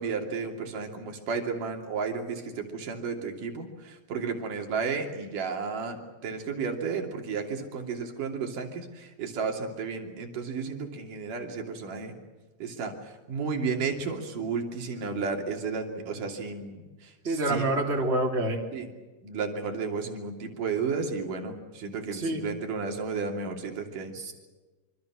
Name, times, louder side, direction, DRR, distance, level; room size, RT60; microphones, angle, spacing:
voice 1, 0.0-12.2 12.6-17.8 18.7-18.9 19.2-24.1, right 5 dB, 80° right, 3 dB, 4.4 m, -33 dB
voice 2, 17.2-18.6 22.1-22.4 24.1-24.3, right 2 dB, 20° right, 0 dB, 3.4 m, -27 dB
26.5 x 25.5 x 6.2 m, 1.2 s
omnidirectional pair, 3.7 m